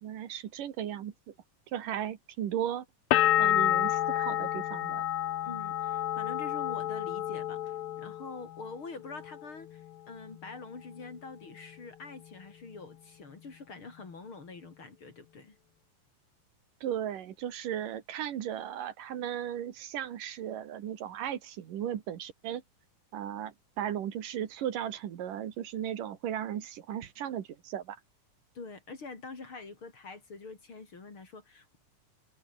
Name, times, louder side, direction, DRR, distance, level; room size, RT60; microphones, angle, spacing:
voice 1, 0.0-1.3 1.7-2.9 3.4-5.0 16.8-22.6 23.1-28.0, right 10 dB, 85° right, 3.4 m, -36 dB
sound 1, 3.1-8.7 9.0-9.8, left 12 dB, 70° left, 1.4 m, -29 dB
voice 2, 5.4-15.6 28.5-31.8, left 4 dB, 40° left, 4.6 m, -45 dB
omnidirectional pair, 3.7 m